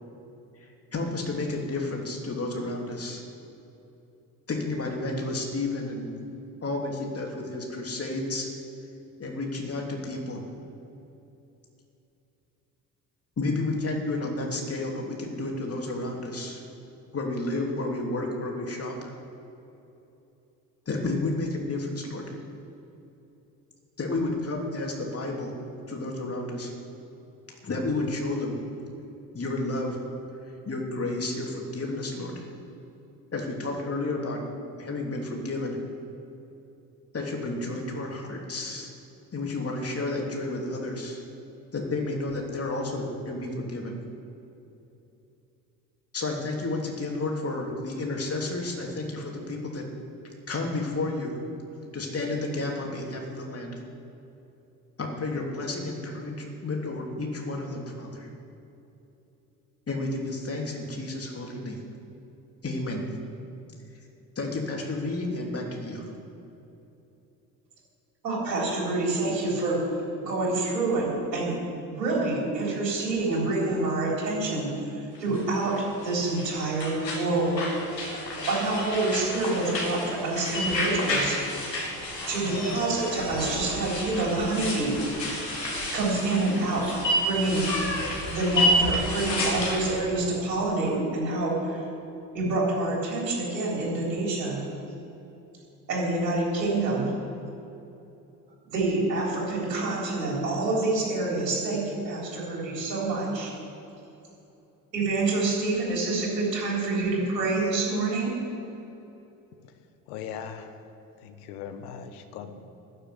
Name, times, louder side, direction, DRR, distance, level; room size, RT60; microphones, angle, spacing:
voice 1, 0.9-3.2 4.5-6.2 6.6-8.5 9.2-10.4 13.4-16.6 17.1-19.1 20.9-22.2 24.0-25.5 25.9-26.7 27.6-28.6 29.3-30.0 30.6-32.4 33.3-34.4 34.8-35.8 37.1-38.9 39.3-41.2 41.7-43.9 46.1-49.8 50.5-51.3 51.9-53.7 55.0-58.3 59.9-61.8 62.6-63.0 64.3-66.1, left 2 dB, 30° left, 0 dB, 3.2 m, -31 dB
voice 2, 68.2-71.6 71.9-77.6 78.5-81.4 82.3-85.0 85.9-87.7 88.3-91.9 92.3-94.6 95.9-97.1 98.7-103.5 104.9-108.4, right 2 dB, 80° right, -3 dB, 3.9 m, -27 dB
sound 1, 75.2-89.9, equal, 90° left, 2.4 m, -30 dB
voice 3, 110.1-110.8 111.2-112.6, left 7 dB, 65° left, 8 dB, 1.3 m, -39 dB
13.5 x 6.8 x 9.6 m, 2.9 s
figure-of-eight pair, 60°, 49 cm